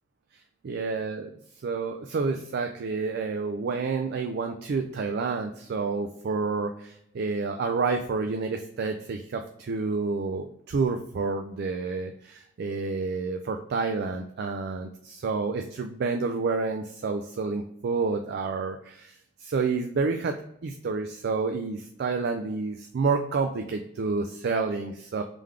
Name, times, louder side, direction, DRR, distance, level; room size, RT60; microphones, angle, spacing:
voice 1, 0.6-1.3 1.6-19.2 19.4-25.2, right 4 dB, 55° right, 6 dB, 0.4 m, -29 dB
3.7 x 3.4 x 3.2 m, 0.72 s
head